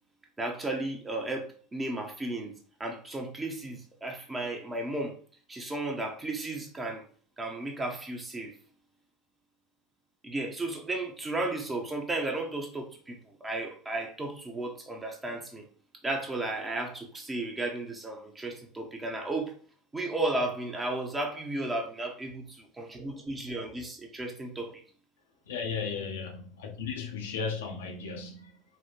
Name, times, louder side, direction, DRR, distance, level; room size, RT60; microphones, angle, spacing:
voice 1, 0.4-5.2 5.5-7.1 7.4-8.5 10.2-15.7 16.0-19.5 19.9-24.8, right 2 dB, 15° right, 0.7 m, -34 dB
voice 2, 25.5-26.3 26.6-28.6, left 5 dB, 65° left, 0.6 m, -35 dB
4.3 x 2.1 x 2.4 m
figure-of-eight pair, 75°, 0 cm